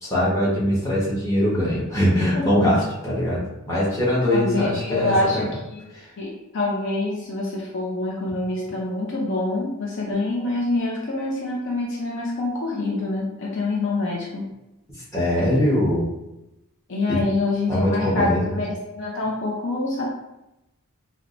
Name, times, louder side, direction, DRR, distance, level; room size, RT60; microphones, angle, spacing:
voice 1, 0.0-5.5 5.9-6.1 15.1-16.1 17.1-17.2 17.7-18.6, left 1 dB, 15° left, -8 dB, 1.0 m, -22 dB
voice 2, 4.3-5.8 6.2-14.4 15.4-15.7 16.9-20.1, left 2 dB, 55° left, -3 dB, 0.5 m, -26 dB
4.4 x 2.1 x 2.5 m, 0.93 s
head